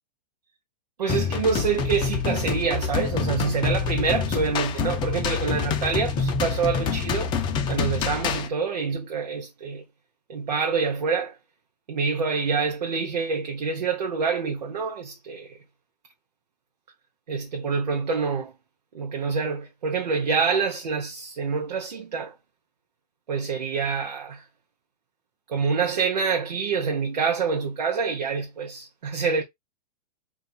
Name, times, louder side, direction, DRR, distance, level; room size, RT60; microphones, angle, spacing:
voice 1, 1.0-7.3 7.7-9.8 10.3-11.4 11.9-15.6 17.3-18.5 18.9-22.3 23.3-24.4 25.5-29.4, right 5 dB, 85° right, 0.8 m, -26 dB
sound 1, 1.1-8.5, left 6 dB, 20° left, 0.5 m, -26 dB
2.4 x 2.4 x 4.0 m
hypercardioid pair, 130°, 21 cm